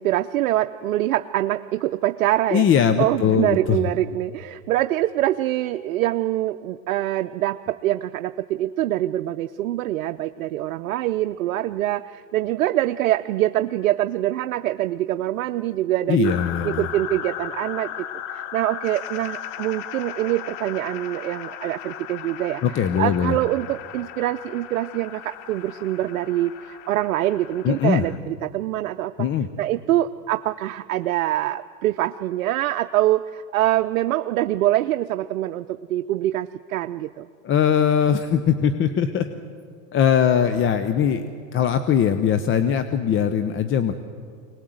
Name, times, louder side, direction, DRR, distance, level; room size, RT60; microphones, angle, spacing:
voice 1, 0.0-2.7 3.0-16.3 16.6-29.3 29.6-37.3, right 14 dB, 85° right, 9 dB, 0.7 m, -24 dB
voice 2, 2.5-3.9 16.1-16.9 22.6-23.4 27.6-28.0 29.2-29.5 37.4-39.3 39.9-41.2 41.5-43.9, left 8 dB, 30° left, 10 dB, 0.9 m, -20 dB
sound 1, 16.2-28.2, left 10 dB, 50° left, 1.1 m, -36 dB
24.5 x 19.5 x 7.9 m, 2.2 s
hypercardioid pair, 115°, 41 cm